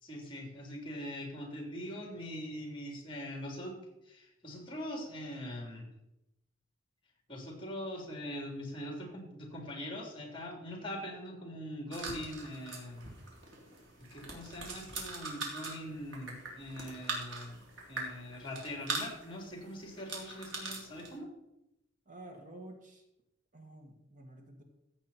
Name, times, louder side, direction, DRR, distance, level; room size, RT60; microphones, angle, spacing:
voice 1, 0.0-3.7 4.1-5.9 7.3-13.1 14.1-17.6 17.9-21.3, equal, 25° left, 1 dB, 3.4 m, -42 dB
sound 1, 11.9-21.2, right 3 dB, 80° right, 3.3 m, -42 dB
voice 2, 22.1-23.0 23.5-24.6, right 1 dB, 45° right, 3 dB, 1.8 m, -50 dB
14.5 x 8.1 x 4.3 m, 0.88 s
head